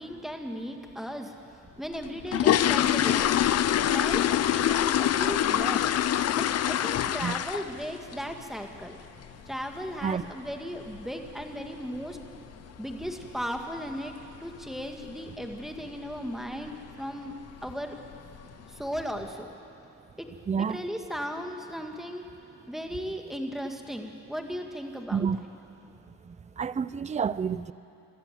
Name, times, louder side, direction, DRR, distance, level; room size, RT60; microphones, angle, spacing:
voice 1, 0.0-1.4 1.8-3.4 3.8-4.2 4.5-5.9 6.4-9.0 9.5-12.2 12.8-14.1 14.4-17.3 17.6-18.0 18.7-19.5 20.2-20.3 20.6-22.3 22.7-25.3, equal, ahead, 2.0 m, -36 dB
sound 1, 1.9-7.9 8.1-8.4 8.8-8.9 9.2-9.4 9.8-10.0 10.2-10.3 10.9-11.0 11.3-11.4 11.9-12.3 12.5-12.6 13.0-13.2 13.6-13.7 14.1-14.2 14.8-15.1 15.4-15.7 16.1-16.2 16.6-16.7 17.5-17.6 18.0-18.5 19.0-19.1, left 11 dB, 55° left, 0.6 m, -25 dB
voice 2, 20.5-20.8 25.1-25.4 26.3-27.7, right 6 dB, 25° right, 0.5 m, -29 dB
25.0 x 14.0 x 7.7 m
cardioid pair, 90°, 30 cm